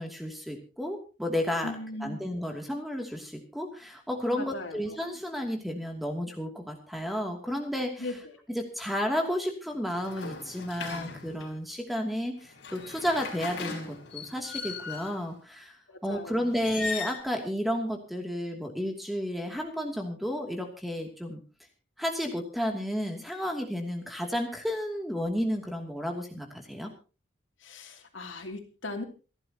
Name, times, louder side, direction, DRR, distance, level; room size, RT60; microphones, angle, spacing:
voice 1, 0.0-1.7 2.0-8.1 8.5-21.4 22.0-26.9, equal, ahead, 2 dB, 2.7 m, -32 dB
voice 2, 1.6-2.2 4.3-4.8 8.0-8.4 15.9-16.5 27.6-29.0, left 2 dB, 90° left, 4 dB, 3.0 m, -38 dB
sound 1, 9.9-11.6 12.4-15.2 16.5-17.2, left 4 dB, 65° left, 5.1 m, -38 dB
28.0 x 11.0 x 3.0 m, 0.35 s
head